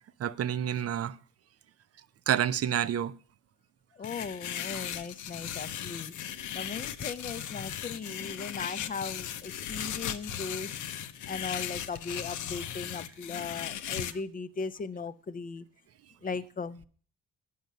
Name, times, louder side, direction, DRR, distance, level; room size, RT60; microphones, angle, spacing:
voice 1, 0.2-1.2 2.3-3.1 4.7-4.8, right 10 dB, 55° right, 0.6 m, -29 dB
voice 2, 3.9-6.1 6.5-10.8 11.3-15.6 16.2-16.8, left 4 dB, 30° left, 0.6 m, -38 dB
sound 1, 4.0-14.1, left 10 dB, 80° left, 0.7 m, -37 dB
9.4 x 6.2 x 6.7 m
cardioid pair, 90°, 30 cm